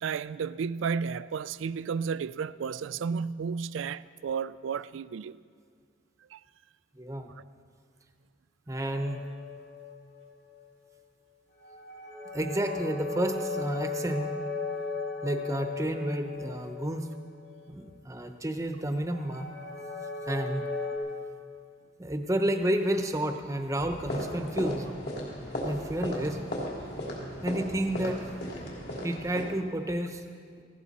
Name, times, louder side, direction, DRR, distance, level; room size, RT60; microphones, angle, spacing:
voice 1, 0.0-5.4 6.3-6.4, right 6 dB, 80° right, 0.3 m, -32 dB
voice 2, 6.9-7.3 8.7-9.2 12.3-14.3 15.2-17.1 17.7-19.5 20.3-20.7 22.0-24.9 25.6-26.4 27.4-28.2 29.0-30.2, right 1 dB, 15° right, 0.8 m, -30 dB
sound 1, 8.8-10.5 11.5-17.6 19.0-21.0, left 3 dB, 70° left, 4.9 m, -37 dB
sound 2, 23.8-29.4, equal, 55° left, 3.2 m, -36 dB
18.5 x 16.0 x 4.2 m
head